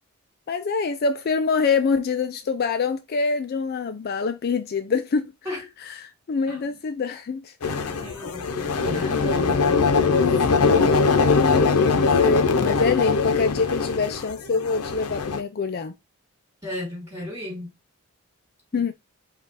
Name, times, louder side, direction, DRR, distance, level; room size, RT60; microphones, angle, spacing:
voice 1, 0.5-5.2 6.0-7.5 7.9-8.3 11.2-15.9 18.7-18.9, left 4 dB, 45° left, 0.4 m, -25 dB
sound 1, 7.6-15.4, left 4 dB, 90° left, 0.7 m, -21 dB
voice 2, 7.7-10.5 16.6-17.7 18.7-18.9, left 1 dB, 15° right, 2.8 m, -35 dB
5.0 x 2.4 x 4.0 m
head